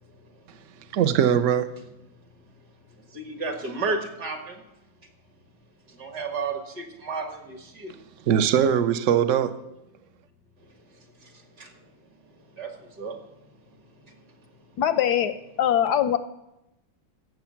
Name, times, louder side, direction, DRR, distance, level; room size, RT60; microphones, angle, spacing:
voice 1, 0.9-1.7 8.3-9.5, right 9 dB, 75° right, 12 dB, 0.7 m, -21 dB
voice 2, 3.1-4.6 5.9-7.9 11.2-11.7 12.6-13.2 14.1-14.2, right 4 dB, 55° right, 4 dB, 2.2 m, -32 dB
voice 3, 14.8-15.3 15.6-16.2, left 10 dB, 75° left, 12 dB, 1.0 m, -21 dB
16.0 x 7.2 x 5.8 m, 0.90 s
omnidirectional pair, 2.2 m